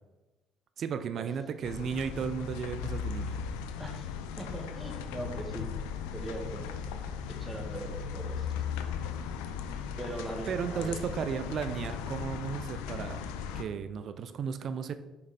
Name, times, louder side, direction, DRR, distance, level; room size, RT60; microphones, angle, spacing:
voice 1, 0.8-3.4 10.5-13.3 13.5-14.9, right 7 dB, 60° right, 11 dB, 0.5 m, -34 dB
sound 1, 1.6-13.6, left 7 dB, 85° left, 0.5 m, -37 dB
voice 2, 4.4-5.7 6.1-6.8 7.4-8.5 10.0-10.9, right 2 dB, 15° right, 0 dB, 2.1 m, -40 dB
6.6 x 5.4 x 4.1 m, 1.1 s
hypercardioid pair, 60°, 0 cm